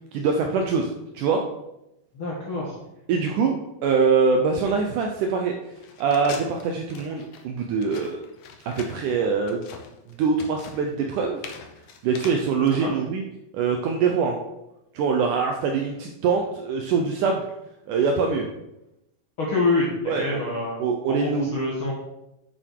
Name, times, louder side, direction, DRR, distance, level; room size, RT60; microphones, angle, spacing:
voice 1, 0.1-1.4 3.1-3.6 3.8-5.6 6.0-8.2 8.6-9.6 10.2-11.4 12.0-13.2 13.5-14.4 14.9-17.4 17.9-18.5 20.1-20.5 20.8-21.6, right 5 dB, 75° right, 3 dB, 1.9 m, -23 dB
voice 2, 2.1-2.8 12.7-12.9 19.4-20.8 21.1-21.9, left 2 dB, 55° left, -4 dB, 1.4 m, -26 dB
sound 1, 5.8-12.8, left 5 dB, 80° left, 1.4 m, -42 dB
8.9 x 6.7 x 4.6 m, 0.89 s
omnidirectional pair, 4.4 m